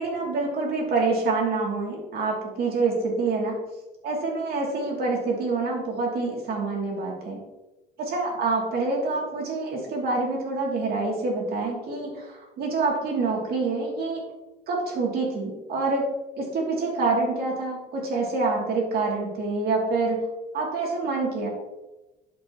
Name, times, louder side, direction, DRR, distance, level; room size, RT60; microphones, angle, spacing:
voice 1, 0.0-3.6 4.0-7.4 8.0-14.2 14.7-16.1 16.4-20.2 20.5-21.5, right 3 dB, 65° right, -1 dB, 2.8 m, -26 dB
11.5 x 5.6 x 3.0 m, 1.0 s
cardioid pair, 110°, 17 cm